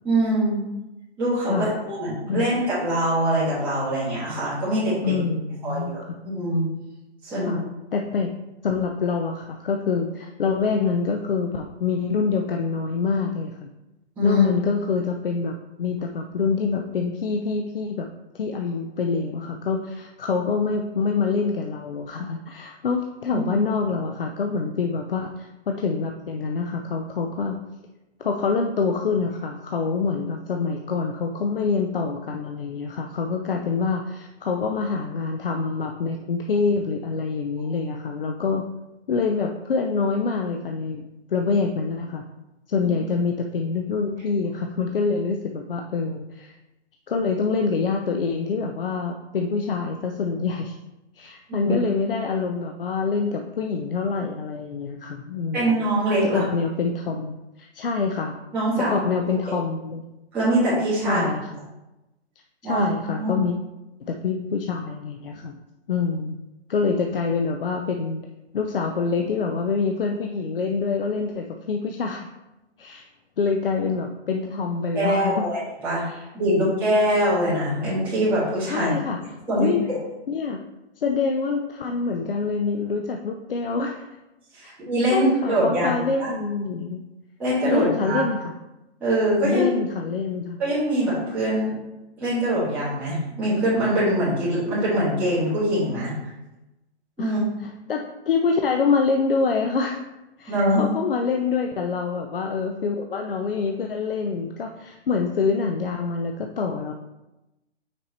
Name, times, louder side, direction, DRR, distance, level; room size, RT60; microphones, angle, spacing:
voice 1, 0.0-0.6 1.2-5.1 5.6-6.0 6.3-6.6 7.2-7.5 14.2-14.4 23.3-23.4 51.5-51.7 55.5-56.4 58.5-59.0 60.3-61.2 62.6-62.9 63.1-63.3 74.9-76.0 76.3-78.9 79.5-80.0 84.5-86.3 87.4-88.2 89.0-89.6 90.6-91.7 92.2-96.1 97.2-97.4 100.5-100.8, right 1 dB, 5° right, -14 dB, 1.5 m, -23 dB
voice 2, 5.0-6.2 7.4-8.3 8.6-13.7 14.2-18.1 18.3-27.5 28.2-38.6 39.1-41.0 41.3-42.2 42.7-46.5 47.1-50.7 51.1-55.8 56.2-58.4 58.8-60.0 61.0-61.7 62.6-63.5 64.0-65.6 65.9-66.4 66.7-68.2 68.5-72.3 72.8-73.1 73.4-75.4 76.0-76.3 78.7-79.2 79.5-79.8 80.3-80.6 81.0-84.1 85.1-87.0 87.7-88.5 89.4-90.6 97.2-97.4 97.6-100.0 100.4-106.9, left 5 dB, 55° left, 3 dB, 0.5 m, -26 dB
6.0 x 4.5 x 4.2 m, 0.98 s
hypercardioid pair, 175°, 34 cm